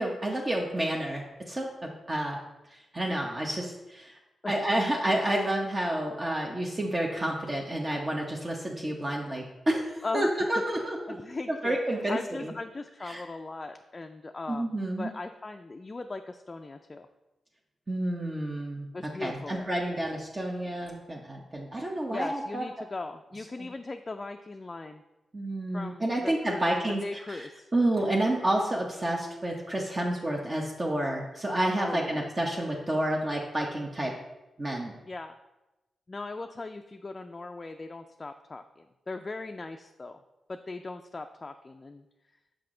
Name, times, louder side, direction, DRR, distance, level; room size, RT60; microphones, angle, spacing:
voice 1, 0.0-2.4 2.9-4.1 4.5-11.1 11.5-12.5 13.0-13.2 14.5-15.1 17.9-18.9 19.2-22.6 23.6-23.7 25.3-27.0 27.3-27.5 27.7-34.1 34.6-35.0, right 1 dB, 35° right, -1 dB, 0.8 m, -29 dB
voice 2, 10.0-10.5 10.7-11.8 12.1-17.1 18.9-19.7 22.1-25.0 25.7-27.7 31.8-32.2 35.1-35.3 36.1-40.2 40.5-42.0, left 3 dB, 35° left, 5 dB, 0.3 m, -39 dB
5.8 x 5.0 x 3.7 m, 1.0 s
cardioid pair, 60°, 0 cm